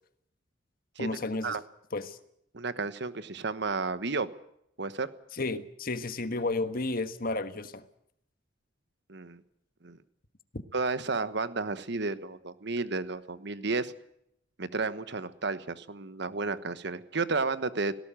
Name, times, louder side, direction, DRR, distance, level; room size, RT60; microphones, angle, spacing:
voice 1, 1.0-1.6 1.9-2.2 5.3-7.8, left 2 dB, 50° left, 1.5 m, -32 dB
voice 2, 2.5-4.3 4.8-5.1 9.1-9.4 9.8-10.0 10.7-13.9 14.6-17.9, right 3 dB, 65° right, 1.3 m, -32 dB
18.0 x 17.5 x 9.0 m
head